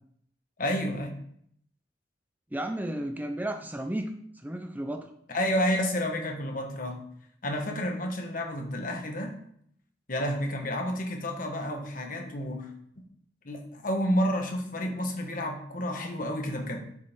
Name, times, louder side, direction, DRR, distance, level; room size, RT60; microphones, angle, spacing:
voice 1, 0.6-1.2 5.3-7.0 7.4-9.4 10.1-13.1 13.4-16.8, equal, 50° left, 3 dB, 1.5 m, -30 dB
voice 2, 2.5-5.1, right 1 dB, 10° right, 5 dB, 0.6 m, -33 dB
10.0 x 6.9 x 3.8 m, 0.67 s
head